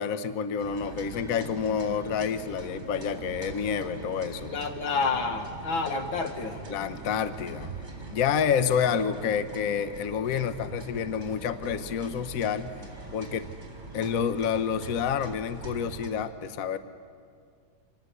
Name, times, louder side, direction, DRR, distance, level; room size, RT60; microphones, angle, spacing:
voice 1, 0.0-4.5 6.7-7.7 8.1-12.7 13.1-13.5 13.9-16.8, left 7 dB, 55° left, 11 dB, 1.0 m, -28 dB
sound 1, 0.6-16.1, right 2 dB, 35° right, 4.2 m, -42 dB
voice 2, 4.5-6.6, left 4 dB, 75° left, 5 dB, 2.4 m, -29 dB
26.0 x 19.0 x 8.3 m, 2.3 s
omnidirectional pair, 2.2 m